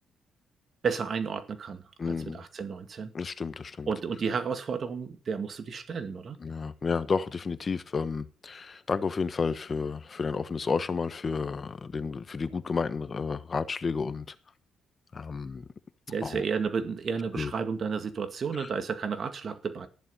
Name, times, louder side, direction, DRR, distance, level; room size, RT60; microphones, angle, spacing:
voice 1, 0.8-3.1 3.9-6.4 16.1-19.9, right 5 dB, 50° right, 2.2 m, -32 dB
voice 2, 2.0-2.4 3.1-3.9 6.4-14.3 15.1-15.6 16.2-16.4 17.3-17.5 18.5-18.7, left 5 dB, 35° left, 1.2 m, -31 dB
14.0 x 11.0 x 5.6 m
cardioid pair, 90°, 0 cm